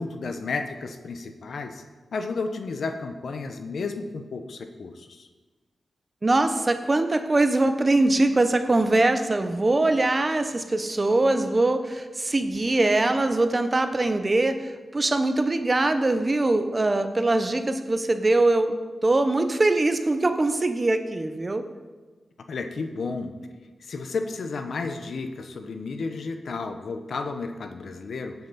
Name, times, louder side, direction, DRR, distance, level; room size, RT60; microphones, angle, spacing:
voice 1, 0.0-1.8 2.1-5.3 22.5-23.3 23.8-28.3, left 4 dB, 75° left, 6 dB, 1.1 m, -32 dB
voice 2, 6.2-21.7, right 2 dB, 30° right, 8 dB, 1.0 m, -22 dB
16.5 x 8.5 x 4.3 m, 1.3 s
wide cardioid pair, 85°, 0 cm